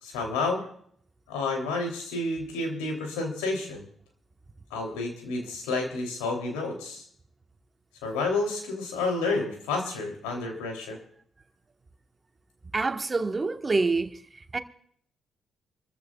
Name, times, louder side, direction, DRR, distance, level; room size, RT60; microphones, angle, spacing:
voice 1, 0.0-0.7 1.3-3.9 4.7-7.0 8.0-11.0, left 3 dB, 85° left, 3.1 m, -30 dB
voice 2, 12.7-14.2 14.5-14.6, right 3 dB, 35° right, 1.4 m, -26 dB
26.0 x 14.5 x 2.4 m
hypercardioid pair, 45°, 0 cm